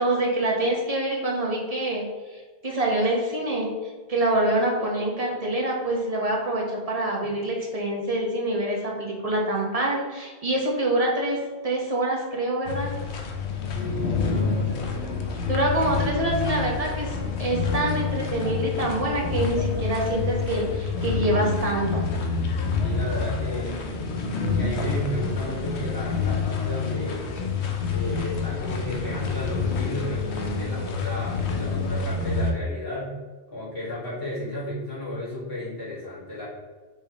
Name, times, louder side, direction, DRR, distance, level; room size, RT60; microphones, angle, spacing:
voice 1, 0.0-2.1 2.6-11.4 11.6-12.9 15.5-17.1 17.4-22.0, right 1 dB, 35° right, -2 dB, 1.4 m, -25 dB
sound 1, 12.7-32.5, left 4 dB, 75° left, 1.1 m, -27 dB
voice 2, 13.7-15.2 22.8-23.8 24.6-27.3 27.9-33.1 33.5-36.5, left 1 dB, 55° left, -10 dB, 2.4 m, -33 dB
6.3 x 5.8 x 3.1 m, 1.4 s
omnidirectional pair, 1.1 m